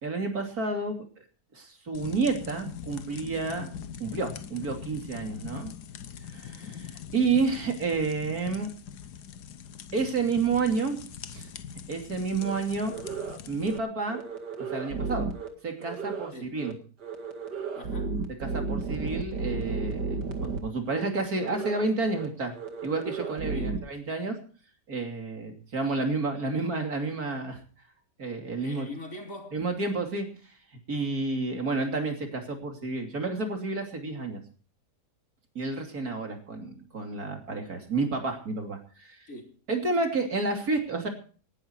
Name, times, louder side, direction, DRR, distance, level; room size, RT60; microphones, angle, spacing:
voice 1, 0.0-1.2 1.5-3.7 4.0-5.7 6.3-8.7 9.9-11.5 11.9-12.9 13.5-14.2 14.7-15.3 15.6-16.7 18.4-22.5 22.8-24.3 24.9-27.6 28.2-28.9 29.5-30.3 30.9-34.4 35.5-39.2 39.7-41.1, right 3 dB, 60° right, 3.4 m, -30 dB
sound 1, 1.9-13.8, left 8 dB, 75° left, 1.5 m, -42 dB
sound 2, 12.4-12.5 12.9-13.4 13.6-13.8 14.1-15.5 15.8-16.3 16.6-16.7 17.0-20.6 20.9-21.0 21.3-21.9 22.1-22.3 22.5-23.8, right 4 dB, 90° right, 2.6 m, -33 dB
voice 2, 17.7-18.2 23.5-23.8 28.6-29.6 39.3-39.6, left 2 dB, 55° left, 3.5 m, -42 dB
19.0 x 11.5 x 4.6 m
omnidirectional pair, 1.8 m